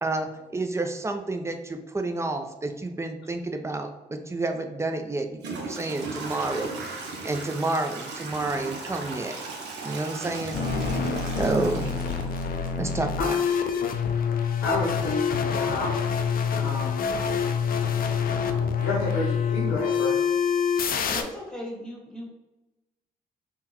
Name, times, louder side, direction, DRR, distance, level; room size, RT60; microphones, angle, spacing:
voice 1, 0.0-6.7 7.2-9.4 9.8-10.6 11.4-11.9 12.8-13.4, right 2 dB, 15° right, 6 dB, 0.5 m, -29 dB
Toilet flush / Trickle dribble, 4.6-4.7 5.4-13.2, right 3 dB, 70° right, 0.6 m, -37 dB
sound 1, 10.5-21.2, left 6 dB, 50° left, 0.4 m, -26 dB
voice 2, 11.4-11.7 14.6-15.9 16.6-17.0 18.8-20.2, left 2 dB, 90° left, -6 dB, 0.7 m, -30 dB
voice 3, 21.1-22.3, equal, 5° left, -2 dB, 1.4 m, -37 dB
3.5 x 2.3 x 2.9 m, 1.0 s
supercardioid pair, 50°, 18 cm